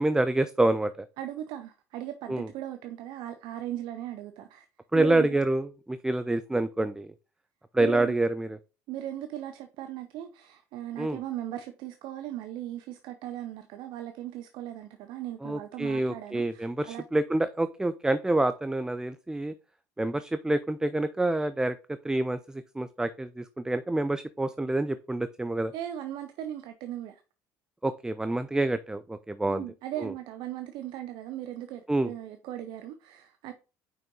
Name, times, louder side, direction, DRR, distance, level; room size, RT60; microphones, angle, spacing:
voice 1, 0.0-1.1 2.3-2.5 4.9-7.1 7.7-8.6 11.0-11.2 15.4-19.5 20.0-21.8 22.0-25.7 27.8-29.6 30.0-30.1 31.9-32.1, right 2 dB, 10° right, 0.4 m, -27 dB
voice 2, 1.2-4.7 4.9-5.3 7.8-8.2 8.9-17.0 25.7-27.2 29.5-33.5, right 12 dB, 65° right, 0.7 m, -38 dB
5.7 x 5.3 x 3.8 m
supercardioid pair, 90°, 8 cm